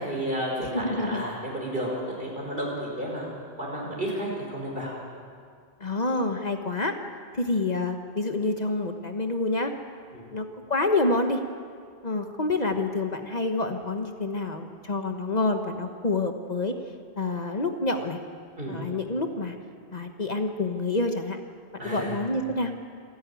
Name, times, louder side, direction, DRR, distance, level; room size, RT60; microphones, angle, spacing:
voice 1, 0.0-3.3 3.6-5.0 10.1-10.3 18.6-18.8 21.8-22.2, right 1 dB, 60° right, -2 dB, 5.5 m, -32 dB
voice 2, 0.6-1.2 5.8-7.0 7.3-9.7 10.3-11.4 12.0-16.7 17.2-18.2 18.7-19.6 19.9-21.4 21.8-22.7, left 2 dB, 45° left, 5 dB, 1.2 m, -27 dB
27.0 x 11.0 x 9.2 m, 2.2 s
omnidirectional pair, 1.0 m